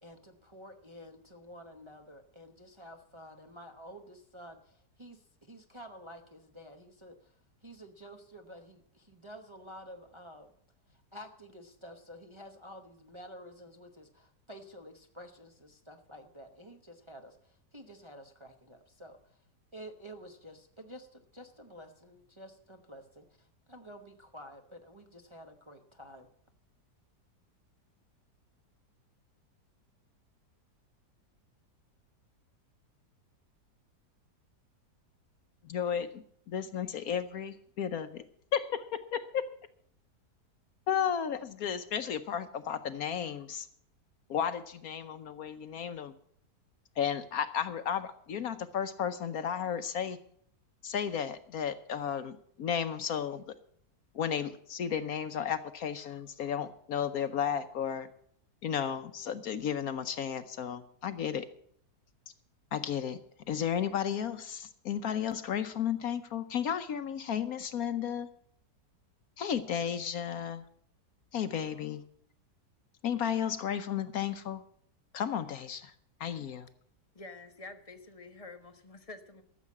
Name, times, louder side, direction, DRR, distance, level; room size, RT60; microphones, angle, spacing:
voice 1, 0.0-7.4 7.6-10.5 10.9-19.4 19.7-26.3, equal, 20° right, 3 dB, 0.8 m, -50 dB
voice 2, 35.6-38.2 38.5-39.5 40.9-43.7 44.3-46.1 47.0-50.2 50.8-53.4 54.1-58.1 58.6-61.5 62.7-63.2 63.5-68.3 69.4-70.6 71.3-72.0 73.0-74.6 75.1-75.9 76.2-76.7, left 8 dB, 65° left, 10 dB, 1.1 m, -33 dB
voice 3, 77.1-79.4, left 3 dB, 25° left, 9 dB, 0.8 m, -48 dB
13.5 x 7.3 x 8.5 m, 0.64 s
omnidirectional pair, 1.8 m